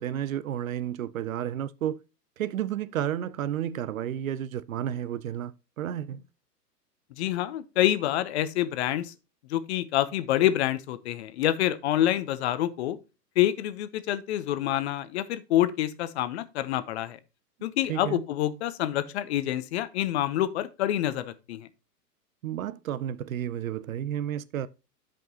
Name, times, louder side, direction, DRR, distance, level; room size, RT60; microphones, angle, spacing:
voice 1, 0.0-2.0 2.4-6.2 17.9-18.2 22.4-24.7, right 10 dB, 60° right, 0.6 m, -31 dB
voice 2, 7.2-9.1 9.5-13.0 13.4-17.2 17.6-21.7, left 13 dB, 40° left, 0.8 m, -27 dB
12.5 x 5.2 x 2.8 m
figure-of-eight pair, 105°, 48 cm